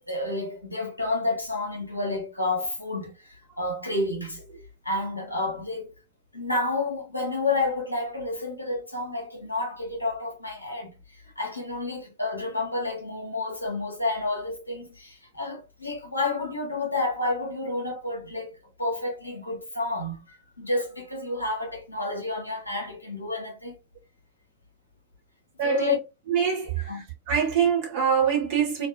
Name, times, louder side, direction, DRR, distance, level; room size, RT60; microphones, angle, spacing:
voice 1, 0.1-4.4 4.8-6.0 6.3-23.7 25.6-26.0 26.7-27.1, left 2 dB, 85° left, 0.8 m, -30 dB
voice 2, 25.6-25.9 26.3-26.7 27.3-28.9, right 7 dB, 50° right, 1.0 m, -24 dB
2.5 x 2.2 x 2.4 m
figure-of-eight pair, 90°, 0 cm